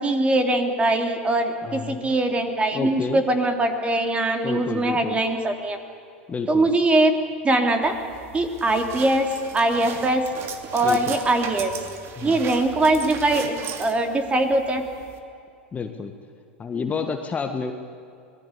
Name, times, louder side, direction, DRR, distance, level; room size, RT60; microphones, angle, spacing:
voice 1, 0.0-5.8 6.5-7.1 7.4-7.9 8.3-9.3 9.5-10.2 10.7-11.7 12.2-14.8, right 2 dB, 20° right, 5 dB, 3.2 m, -22 dB
voice 2, 1.6-2.1 2.7-3.2 4.4-5.2 6.3-6.7 10.8-11.2 12.2-12.4 15.7-16.1 16.6-17.7, left 5 dB, 20° left, 6 dB, 1.6 m, -30 dB
sound 1, 7.8-15.2, right 7 dB, 40° right, 2.6 m, -38 dB
25.5 x 19.5 x 8.4 m, 2.5 s
hypercardioid pair, 95°, 6 cm